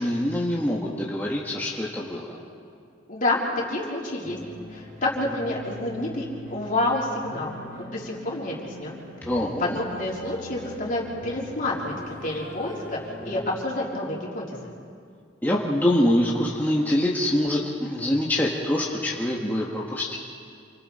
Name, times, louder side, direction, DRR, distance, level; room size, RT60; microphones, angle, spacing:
voice 1, 0.0-2.4 9.3-9.8 15.4-20.2, left 1 dB, 10° left, -4 dB, 1.7 m, -25 dB
voice 2, 3.1-3.4 3.7-4.4 4.7-6.3 6.5-7.5 7.8-9.0 9.6-14.7, left 2 dB, 45° left, -4 dB, 4.0 m, -28 dB
sound 1, 4.2-13.5, left 1 dB, 50° right, 7.8 m, -42 dB
28.5 x 24.5 x 4.4 m, 2.3 s
head